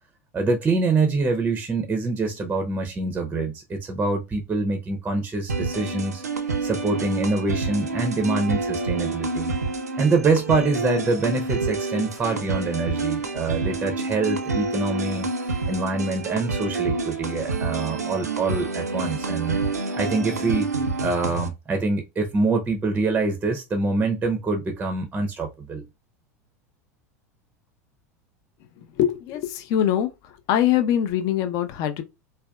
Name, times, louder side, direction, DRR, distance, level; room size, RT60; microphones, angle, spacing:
voice 1, 0.3-6.2 6.6-9.5 10.0-15.3 15.7-19.6 20.0-20.7 21.0-25.8, right 3 dB, 15° right, 0.5 m, -25 dB
sound 1, 5.5-21.5, right 3 dB, 85° right, 0.4 m, -28 dB
voice 2, 28.9-30.1 30.5-32.0, left 10 dB, 45° left, 0.5 m, -22 dB
3.4 x 2.2 x 2.3 m
figure-of-eight pair, 85°, 8 cm